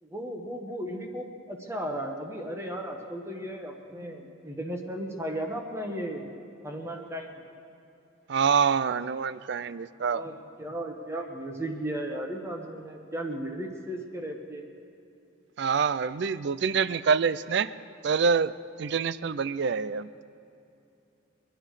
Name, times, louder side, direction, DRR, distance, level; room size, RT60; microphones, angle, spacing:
voice 1, 0.0-6.3 6.6-7.3 10.1-14.7, right 1 dB, 15° right, 3 dB, 1.1 m, -35 dB
voice 2, 8.3-10.2 15.6-17.7 18.0-20.1, right 6 dB, 55° right, 16 dB, 0.4 m, -26 dB
23.0 x 10.0 x 4.9 m, 2.7 s
head